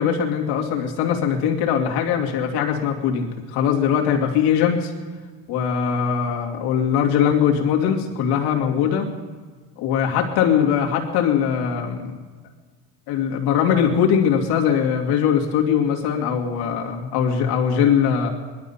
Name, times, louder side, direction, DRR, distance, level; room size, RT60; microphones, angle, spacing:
voice 1, 0.0-4.9 5.5-9.1 9.8-12.2 13.1-18.3, left 8 dB, 70° left, 1 dB, 2.4 m, -21 dB
20.0 x 12.0 x 5.7 m, 1.4 s
cardioid pair, 145°, 41 cm